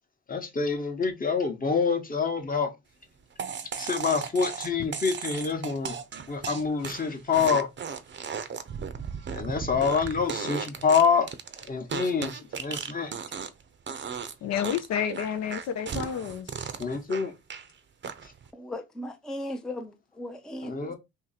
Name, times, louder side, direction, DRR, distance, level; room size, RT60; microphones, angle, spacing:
voice 1, 0.3-2.7 3.8-6.0 6.3-7.7 9.3-11.3 11.7-13.1 16.8-17.3 18.2-18.3 20.6-21.0, left 5 dB, 30° left, 1.0 m, -26 dB
sound 1, 3.4-13.6 13.9-14.3 14.6-17.7 18.0-18.5, right 6 dB, 35° right, 0.6 m, -36 dB
voice 2, 14.4-16.5, left 8 dB, 60° left, 0.5 m, -30 dB
voice 3, 18.5-20.9, left 1 dB, ahead, 0.5 m, -37 dB
2.8 x 2.7 x 4.0 m
cardioid pair, 70°, 30 cm